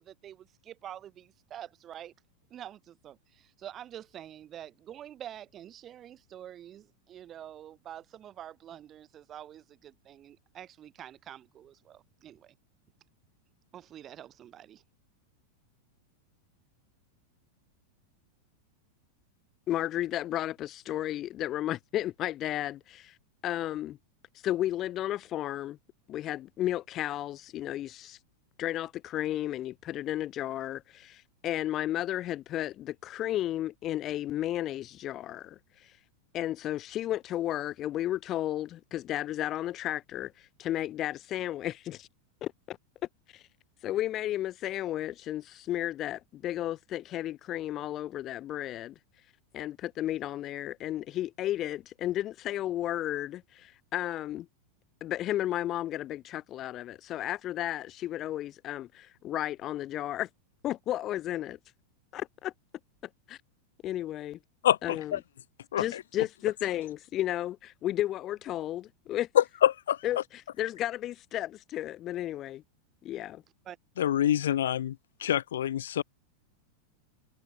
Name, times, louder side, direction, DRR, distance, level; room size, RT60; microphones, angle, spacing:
voice 1, 0.0-2.1 2.5-12.5 13.7-14.8 73.6-73.8, right 11 dB, 30° right, 4.9 m, -47 dB
voice 2, 19.7-23.2 23.4-24.0 24.4-25.8 26.1-28.2 28.6-35.9 36.3-42.1 42.4-42.8 43.3-43.5 43.8-48.9 49.5-54.5 55.0-60.3 60.6-61.6 62.1-62.5 63.3-63.4 63.8-64.4 64.8-65.2 65.8-69.3 70.0-72.6 73.0-73.4, left 13 dB, 35° left, 0.5 m, -33 dB
voice 3, 64.6-65.2 65.7-66.0 69.3-70.0 74.0-76.0, left 11 dB, 70° left, 1.1 m, -26 dB
figure-of-eight pair, 90°, 0 cm